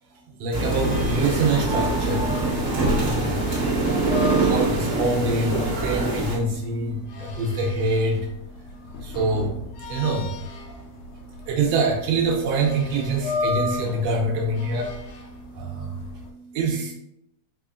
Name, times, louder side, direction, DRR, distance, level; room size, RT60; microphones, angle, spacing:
voice 1, 0.4-8.3 9.0-9.5 9.9-10.4 11.1-16.9, right 3 dB, 75° right, 1 dB, 1.6 m, -26 dB
sound 1, 0.5-6.4, right 2 dB, 55° right, 0.7 m, -24 dB
sound 2, 0.7-16.3, left 3 dB, 85° left, 2.1 m, -35 dB
4.9 x 3.7 x 2.5 m, 0.79 s
omnidirectional pair, 3.5 m